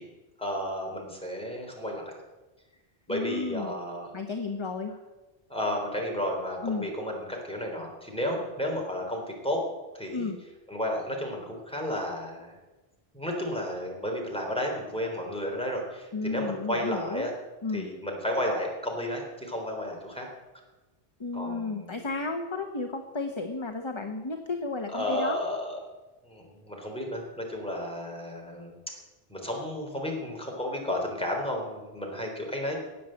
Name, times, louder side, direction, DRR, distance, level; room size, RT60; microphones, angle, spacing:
voice 1, 0.4-2.1 3.1-4.1 5.5-9.6 9.9-10.3 10.7-12.6 13.1-17.3 17.7-20.3 21.3-22.0 24.9-25.8 26.2-28.9 29.3-32.8, left 1 dB, 5° left, 0 dB, 3.6 m, -32 dB
voice 2, 3.1-3.8 4.1-4.9 6.6-6.9 10.1-10.4 16.1-17.3 17.6-17.9 21.2-25.4, left 3 dB, 30° left, 5 dB, 0.9 m, -33 dB
18.5 x 7.5 x 7.7 m, 1.2 s
omnidirectional pair, 1.1 m